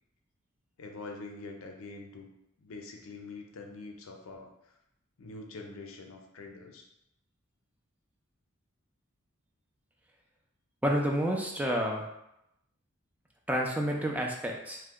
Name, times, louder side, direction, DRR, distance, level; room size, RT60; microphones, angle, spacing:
voice 1, 0.8-2.3 2.6-4.5 5.2-6.9, left 3 dB, 80° left, 3 dB, 0.5 m, -44 dB
voice 2, 10.8-12.0 13.5-14.8, equal, 5° right, 0 dB, 0.4 m, -29 dB
2.8 x 2.1 x 3.5 m, 0.83 s
head